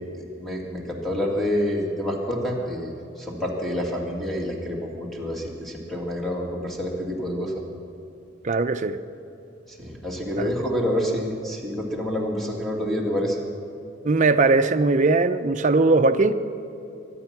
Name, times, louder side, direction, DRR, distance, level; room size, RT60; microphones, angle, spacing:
voice 1, 0.2-2.9 3.2-7.5 9.7-13.4, equal, ahead, -2 dB, 2.2 m, -28 dB
voice 2, 8.4-9.0 10.4-10.5 14.0-16.3, right 3 dB, 40° right, 8 dB, 0.6 m, -19 dB
23.0 x 10.0 x 6.0 m, 2.7 s
head